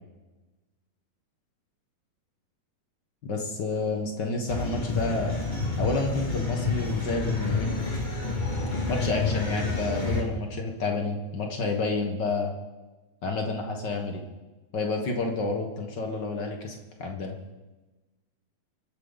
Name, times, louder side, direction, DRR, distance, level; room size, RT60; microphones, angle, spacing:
voice 1, 3.2-5.3 5.8-7.7 8.9-12.5 13.2-14.2 14.7-17.4, left 3 dB, 65° left, 2 dB, 1.0 m, -29 dB
sound 1, 4.5-10.2, left 3 dB, 20° left, 1.5 m, -29 dB
26.0 x 11.0 x 4.0 m, 1.2 s
omnidirectional pair, 4.1 m